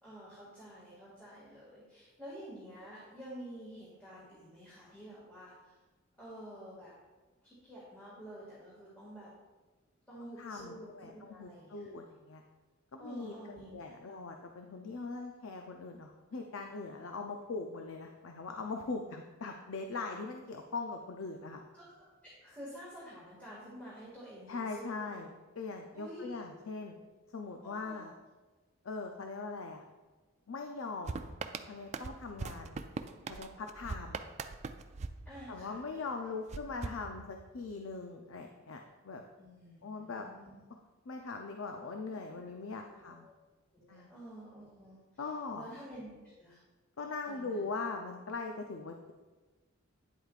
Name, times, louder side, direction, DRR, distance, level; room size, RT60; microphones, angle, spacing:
voice 1, 0.0-5.8 6.2-6.9 7.4-9.3 10.1-11.9 13.0-14.1 21.7-25.1 25.9-26.4 27.6-28.0 35.3-36.2 39.4-40.5 42.3-42.5 42.9-43.3 43.7-45.0 45.6-46.1 46.4-46.6 47.3-47.7, equal, 10° left, -9 dB, 2.0 m, -50 dB
voice 2, 10.4-12.4 12.9-13.3 13.7-21.6 24.5-25.3 25.6-27.0 27.3-28.1 28.8-29.8 30.5-31.2 31.6-32.8 33.3-34.2 35.5-39.2 39.8-40.3 41.1-43.3 43.9-44.1 45.2-45.6 47.0-49.1, left 4 dB, 75° left, 3 dB, 0.6 m, -41 dB
sound 1, 31.1-35.9 36.5-37.7, right 4 dB, 35° right, 0.3 m, -42 dB
9.8 x 7.9 x 2.4 m, 1.2 s
head